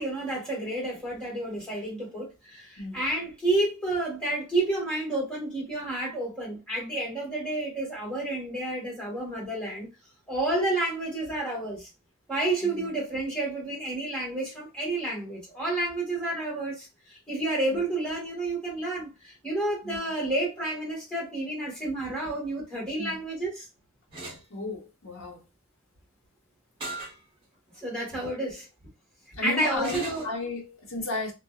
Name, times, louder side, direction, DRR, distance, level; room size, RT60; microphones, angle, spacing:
voice 1, 0.0-9.9 10.3-11.9 12.3-23.6 27.8-28.7 29.4-30.2, right 2 dB, 5° left, 1.4 m, -30 dB
sound 1, 24.1-24.4 26.8-27.2 27.7-27.8 29.8-30.3, right 2 dB, 25° right, 0.9 m, -37 dB
voice 2, 24.5-25.5 28.1-28.3 29.4-31.3, left 2 dB, 65° left, 1.0 m, -34 dB
2.6 x 2.2 x 2.3 m
head